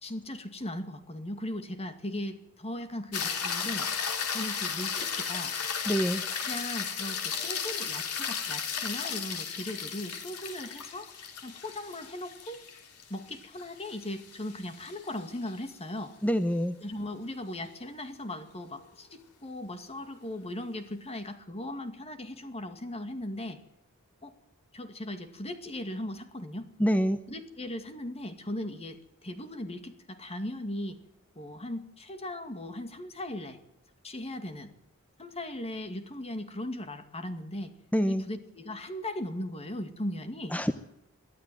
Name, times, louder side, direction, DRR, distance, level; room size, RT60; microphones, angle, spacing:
voice 1, 0.0-3.9 4.3-5.6 6.4-11.1 11.4-12.6 13.1-16.1 16.8-23.6 24.2-24.3 24.7-26.7 27.3-31.0 31.4-33.6 34.0-34.7 35.2-37.7 38.1-40.5, left 1 dB, 30° left, 8 dB, 2.2 m, -38 dB
sound 1, 3.1-15.5 20.0-20.1, left 6 dB, 90° left, 3.6 m, -35 dB
voice 2, 5.9-6.2 16.2-16.8 26.8-27.2 37.9-38.2 40.5-40.7, equal, 5° left, 11 dB, 0.8 m, -26 dB
23.0 x 13.5 x 9.3 m, 0.85 s
head